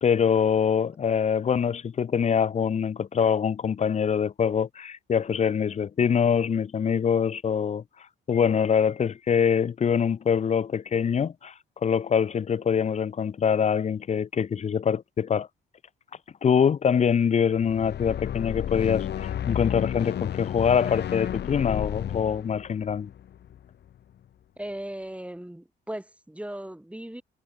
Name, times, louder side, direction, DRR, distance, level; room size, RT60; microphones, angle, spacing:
voice 1, 0.0-7.8 8.3-11.5 11.8-15.5 16.4-23.1, left 7 dB, 35° left, 0.6 m, -24 dB
sound 1, 17.6-23.9, left 10 dB, 60° left, 1.2 m, -32 dB
voice 2, 24.6-27.2, right 1 dB, 5° right, 5.1 m, -37 dB
cardioid pair, 90°, 20 cm